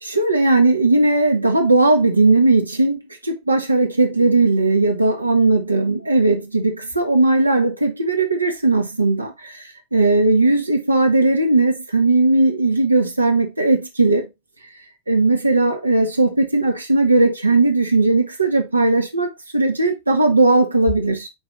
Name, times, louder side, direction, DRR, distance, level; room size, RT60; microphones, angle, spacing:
voice 1, 0.0-9.6 9.9-14.3 15.1-21.3, right 2 dB, 80° right, 1.6 m, -17 dB
8.6 x 4.7 x 2.5 m
figure-of-eight pair, 90°, 0 cm